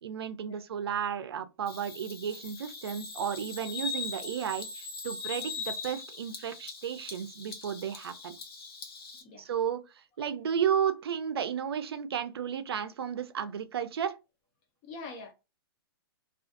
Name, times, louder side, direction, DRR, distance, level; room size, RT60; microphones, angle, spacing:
voice 1, 0.0-8.4 9.4-9.8 10.2-14.2, right 8 dB, 75° right, 0.5 m, -33 dB
Bird vocalization bird call bird song, 1.7-9.2, left 4 dB, 70° left, 0.8 m, -41 dB
voice 2, 14.8-15.3, left 3 dB, 20° left, 0.4 m, -44 dB
2.5 x 2.4 x 2.4 m
hypercardioid pair, 170°, 13 cm